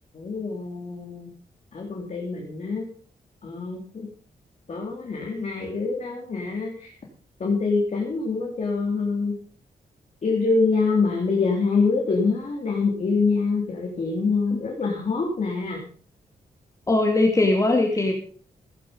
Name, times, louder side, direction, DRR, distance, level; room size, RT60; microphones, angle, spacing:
voice 1, 0.1-1.3 1.7-2.9 3.4-4.1 4.7-6.9 7.4-9.4 10.2-15.8, left 4 dB, 45° left, 0 dB, 3.5 m, -25 dB
voice 2, 16.9-18.1, left 2 dB, 20° left, 2 dB, 2.5 m, -20 dB
16.5 x 11.0 x 5.4 m, 0.43 s
wide cardioid pair, 150°, 16 cm